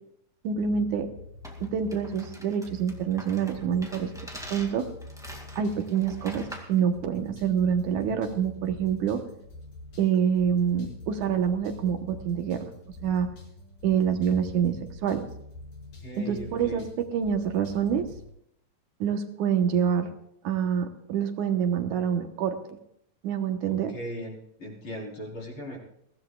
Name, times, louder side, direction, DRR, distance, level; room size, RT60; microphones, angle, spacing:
voice 1, 0.4-1.1 1.6-4.1 4.5-4.9 5.6-9.2 10.0-12.6 13.0-13.3 13.8-14.8 15.0-15.2 16.2-16.9 17.1-18.1 19.0-20.1 20.4-22.8 23.2-23.9, right 8 dB, 70° right, 6 dB, 2.3 m, -26 dB
sound 1, 0.6-18.3, left 2 dB, 75° left, 7.4 m, -46 dB
sound 2, 1.4-6.8, equal, ahead, 1.3 m, -45 dB
voice 2, 16.0-16.8 23.7-25.8, equal, 35° left, -2 dB, 4.7 m, -38 dB
22.5 x 16.5 x 2.4 m, 0.74 s
omnidirectional pair, 4.0 m